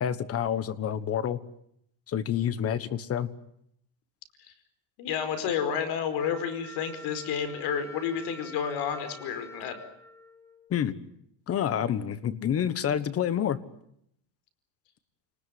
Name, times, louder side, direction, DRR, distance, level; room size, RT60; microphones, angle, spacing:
voice 1, 0.0-1.4 2.1-3.3 10.7-11.0 11.5-13.6, left 9 dB, 30° left, 15 dB, 1.4 m, -28 dB
voice 2, 5.0-9.8, left 7 dB, 50° left, 10 dB, 5.0 m, -30 dB
Wind instrument woodwind instrument, 6.2-11.0, left 2 dB, 5° left, 1.8 m, -47 dB
28.0 x 20.0 x 9.4 m, 0.74 s
cardioid pair, 160°, 49 cm